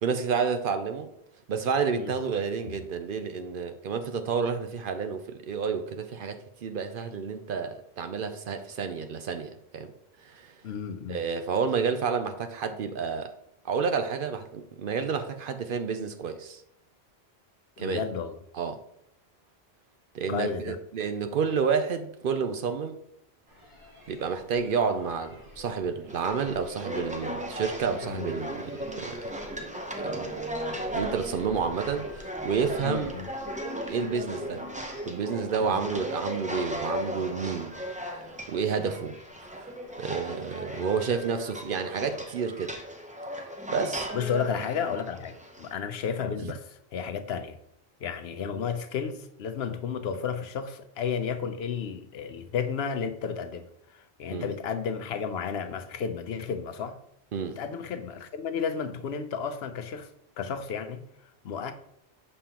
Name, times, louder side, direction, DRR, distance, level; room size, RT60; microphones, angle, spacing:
voice 1, 0.0-1.1 1.5-9.9 10.2-10.5 11.1-13.3 13.6-16.6 17.8-18.0 18.5-18.8 20.1-23.0 24.1-29.2 30.0-30.4 30.9-33.1 33.9-34.7 35.1-37.8 38.0-39.2 39.4-39.7 40.0-42.8 43.7-44.1 46.4-46.5 54.3-54.5 57.3-57.6, right 6 dB, 60° right, 0.7 m, -30 dB
voice 2, 10.6-11.2 17.8-18.4 20.3-20.8 28.0-28.3 32.8-33.3 35.6-35.8 40.7-40.9 44.1-47.6 48.0-57.0 57.6-61.7, left 6 dB, 70° left, 0.8 m, -33 dB
sound 1, 23.5-41.1, left 2 dB, 25° right, 2.2 m, -52 dB
sound 2, 26.1-45.7, equal, 10° right, 0.6 m, -36 dB
6.5 x 5.5 x 2.9 m
omnidirectional pair, 1.1 m